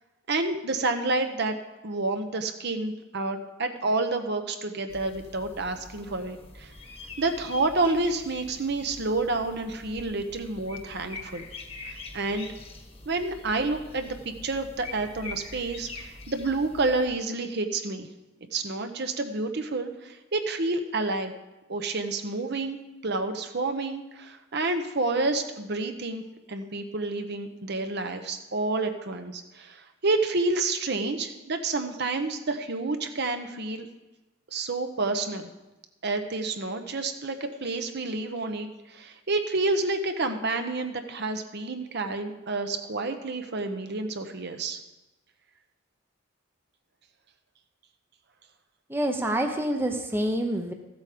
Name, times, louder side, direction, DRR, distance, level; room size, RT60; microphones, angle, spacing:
voice 1, 0.3-1.6 1.8-6.7 7.2-11.5 11.9-12.5 13.1-18.1 18.5-21.3 21.7-33.9 34.5-35.5 36.0-44.8, right 3 dB, 55° right, 7 dB, 0.9 m, -29 dB
sound 1, 4.9-17.1, left 3 dB, 30° left, 1.3 m, -44 dB
voice 2, 48.9-50.7, right 1 dB, 10° right, 4 dB, 0.7 m, -27 dB
14.5 x 8.1 x 5.1 m, 1.0 s
head